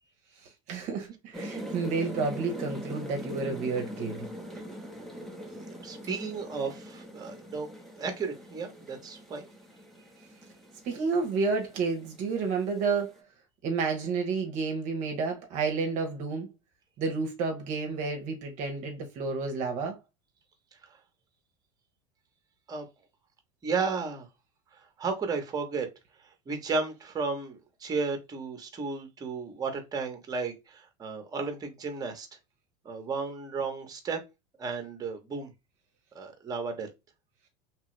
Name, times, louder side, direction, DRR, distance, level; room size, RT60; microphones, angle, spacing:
voice 1, 0.7-4.3 10.8-13.1 13.6-16.5 17.0-20.0, right 4 dB, 50° right, 0.8 m, -30 dB
sound 1, 1.3-13.2, equal, ahead, 0.8 m, -42 dB
voice 2, 5.6-7.7 8.0-9.5 22.7-22.8 23.6-24.3 25.0-25.9 26.5-32.3 32.8-34.2 34.6-35.5 36.1-36.9, right 4 dB, 25° right, 1.0 m, -33 dB
3.0 x 2.3 x 3.1 m
hypercardioid pair, 100°, 16 cm